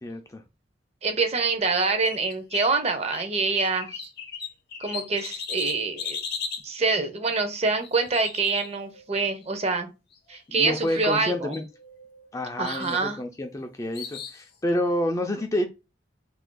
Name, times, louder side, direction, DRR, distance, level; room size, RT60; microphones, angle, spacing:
voice 1, 0.0-0.4 10.5-11.6 12.3-15.7, left 1 dB, 15° left, 0.3 m, -28 dB
voice 2, 1.0-4.1 4.8-6.2 6.6-9.9 10.3-11.6 12.6-13.2, right 4 dB, 35° right, 0.6 m, -26 dB
sound 1, 1.6-2.7 3.1-6.7 7.8-9.2 10.1-10.4 10.7-11.3 11.5-12.3 12.6-13.0 13.9-14.4, left 6 dB, 55° left, 0.6 m, -37 dB
2.7 x 2.5 x 3.7 m
head